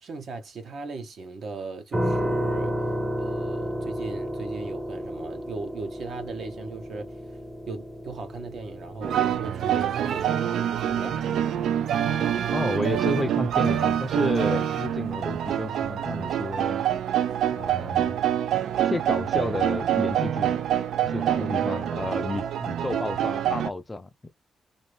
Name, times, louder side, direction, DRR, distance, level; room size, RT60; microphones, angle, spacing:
voice 1, 0.0-2.7 3.2-7.1 7.7-10.5 10.8-11.2 21.2-21.6 22.3-22.5, right 3 dB, 55° right, 0.9 m, -37 dB
sound 1, 1.9-14.8, equal, 15° right, 0.7 m, -33 dB
sound 2, 9.0-23.7, right 10 dB, 80° right, 0.3 m, -26 dB
voice 2, 12.5-16.8 17.6-18.2 18.8-20.6 21.0-24.3, left 2 dB, 15° left, 0.3 m, -31 dB
2.6 x 2.6 x 3.1 m
wide cardioid pair, 170°, 0 cm